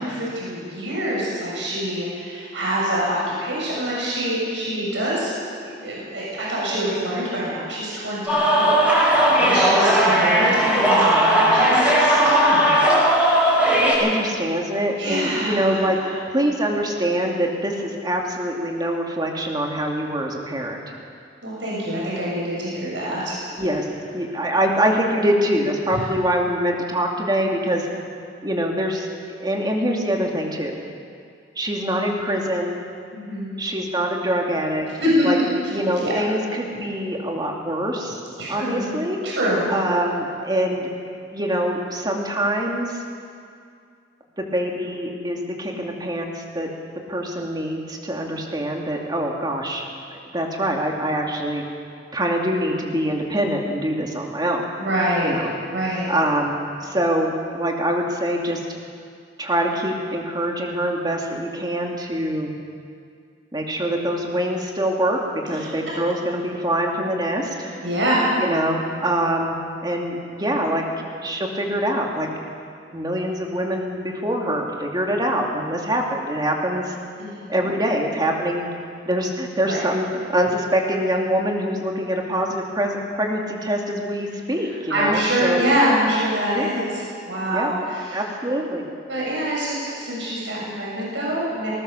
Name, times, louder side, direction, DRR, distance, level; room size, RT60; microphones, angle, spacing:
voice 1, 0.0-5.3 5.8-8.9 9.4-12.9 13.4-13.9 15.0-16.1 21.4-23.4 25.9-26.0 33.1-33.5 35.0-35.4 36.0-36.1 38.4-38.9 39.2-39.7 54.8-55.3 55.7-56.0 65.6-65.7 67.5-68.3 77.2-77.3 79.6-79.8 84.9-88.3 89.1-91.7, equal, 75° right, -5 dB, 7.0 m, -25 dB
sound 1, 8.3-13.9, right 1 dB, 5° right, 6.0 m, -17 dB
voice 2, 9.9-10.5 14.0-16.0 16.3-20.8 23.5-23.9 24.1-27.9 28.4-29.1 29.4-30.8 31.6-32.8 33.6-34.9 35.2-35.4 35.7-38.2 38.5-39.2 39.7-40.9 41.3-42.9 44.4-46.7 47.1-49.8 50.1-51.6 52.1-54.7 55.2-55.5 56.1-58.6 59.4-62.5 63.5-67.5 68.4-72.3 72.9-76.9 77.5-78.7 79.1-85.7 86.5-86.7 87.5-87.7 88.1-88.8, right 1 dB, 25° right, 0 dB, 2.6 m, -24 dB
19.5 x 19.5 x 6.9 m, 2.2 s
head